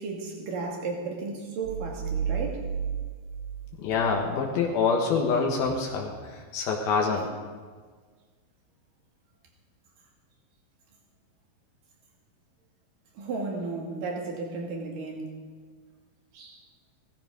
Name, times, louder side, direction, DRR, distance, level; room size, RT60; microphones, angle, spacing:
voice 1, 0.0-2.6 13.2-15.3 16.3-16.6, right 3 dB, 65° right, 0 dB, 3.9 m, -34 dB
sound 1, 1.6-4.3, right 7 dB, 80° right, 1.4 m, -33 dB
voice 2, 3.8-7.3, left 5 dB, 80° left, -1 dB, 3.2 m, -26 dB
17.0 x 14.5 x 5.3 m, 1.5 s
omnidirectional pair, 4.3 m